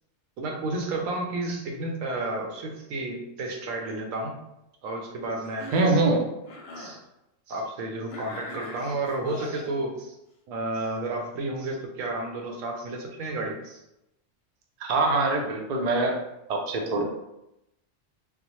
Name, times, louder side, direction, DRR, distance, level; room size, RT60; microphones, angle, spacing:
voice 1, 0.4-4.4 4.8-6.0 6.8-7.0 7.5-10.1 10.5-13.8, right 2 dB, 85° right, 2 dB, 1.1 m, -32 dB
Cough, 5.4-6.0 6.4-7.0 8.1-9.7, left 1 dB, 60° left, 0.8 m, -41 dB
voice 2, 5.7-6.3 14.8-16.2 16.5-17.0, right 2 dB, 50° right, 1 dB, 0.5 m, -23 dB
3.6 x 2.2 x 3.0 m, 0.87 s
omnidirectional pair, 1.3 m